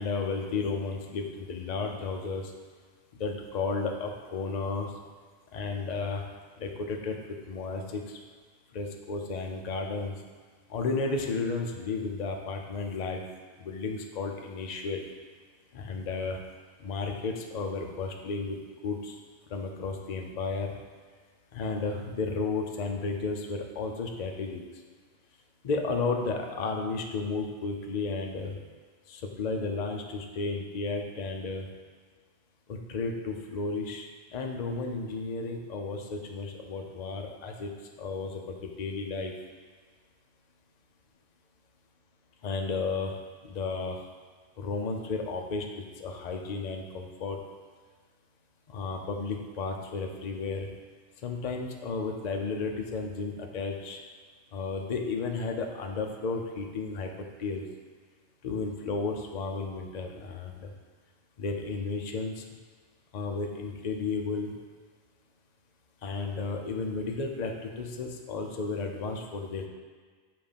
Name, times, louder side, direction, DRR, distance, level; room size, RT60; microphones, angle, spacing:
voice 1, 0.0-2.4 3.2-4.9 5.5-6.2 6.6-7.2 7.5-8.2 8.7-10.1 10.7-13.2 13.6-15.0 15.7-16.4 16.8-18.6 18.8-19.2 19.5-20.7 21.5-24.6 25.6-28.5 29.1-31.6 32.7-34.1 34.3-37.7 38.0-39.3 42.4-43.1 43.4-44.0 44.6-47.4 48.7-50.7 51.2-54.0 54.5-57.1 57.4-57.6 58.4-60.7 61.4-62.4 63.1-64.5 66.0-69.7, left 4 dB, 50° left, 3 dB, 0.6 m, -33 dB
7.5 x 2.6 x 5.1 m, 1.5 s
omnidirectional pair, 1.1 m